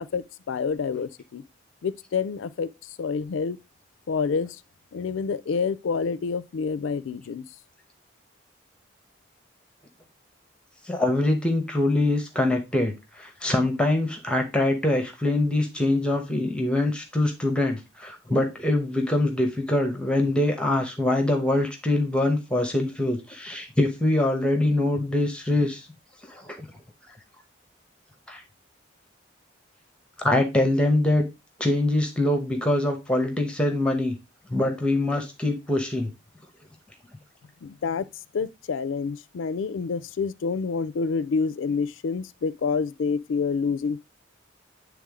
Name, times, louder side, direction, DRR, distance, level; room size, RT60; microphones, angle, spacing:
voice 1, 0.0-1.4 1.8-3.6 4.1-4.6 4.9-7.4 37.6-38.1 38.3-44.1, left 5 dB, 85° left, 0.4 m, -28 dB
voice 2, 10.8-25.9 26.2-26.7 28.3-28.4 30.2-31.2 31.6-34.2 34.5-36.1, left 1 dB, 5° left, 0.9 m, -24 dB
8.8 x 3.5 x 3.6 m
head